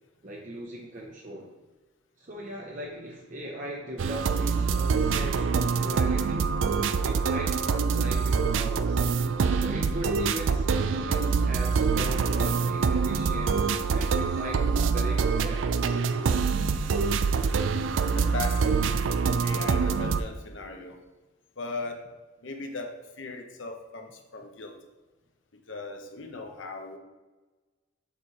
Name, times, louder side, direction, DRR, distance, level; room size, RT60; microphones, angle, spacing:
voice 1, 0.2-1.5 2.2-6.5 7.0-9.0 9.5-13.6 13.9-15.7, right 1 dB, 45° right, -1 dB, 0.8 m, -39 dB
sound 1, 4.0-20.2, right 5 dB, 85° right, 0.4 m, -25 dB
voice 2, 18.0-18.8 19.4-21.0 21.6-22.1 22.4-24.8 25.7-27.0, left 3 dB, 90° left, 4 dB, 1.0 m, -38 dB
7.2 x 4.2 x 4.8 m, 1.2 s
head